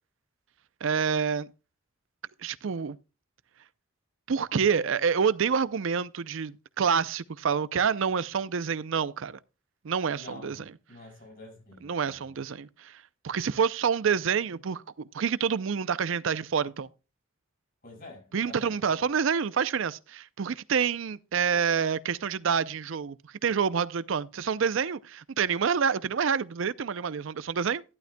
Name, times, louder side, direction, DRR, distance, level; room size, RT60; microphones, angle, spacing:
voice 1, 0.8-1.5 2.4-3.0 4.3-9.4 9.8-10.6 11.8-16.9 18.3-23.2 23.4-27.8, right 6 dB, 65° right, 0.5 m, -27 dB
voice 2, 10.2-12.4 17.8-18.8, left 2 dB, 45° left, 5.9 m, -48 dB
12.0 x 11.5 x 2.2 m
head